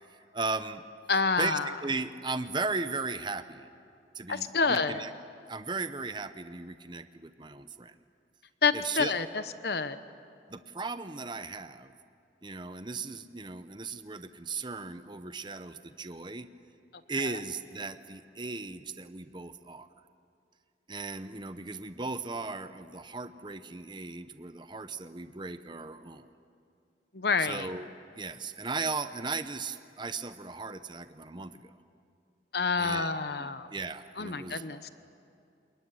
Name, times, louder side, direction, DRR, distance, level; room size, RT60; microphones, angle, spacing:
voice 1, 0.3-0.8 1.4-3.7 4.1-5.1 5.5-7.9 8.7-9.1 10.5-11.9 12.4-16.5 17.1-19.9 20.9-26.3 27.4-27.9 28.2-31.7 32.8-33.1 33.4-34.6, right 3 dB, 25° right, 11 dB, 0.8 m, -37 dB
voice 2, 1.1-1.7 4.3-5.0 8.6-10.0 17.2-17.3 27.1-27.7 32.5-33.7 34.2-34.9, left 4 dB, 65° left, 11 dB, 1.0 m, -28 dB
27.0 x 22.0 x 9.8 m, 2.5 s
head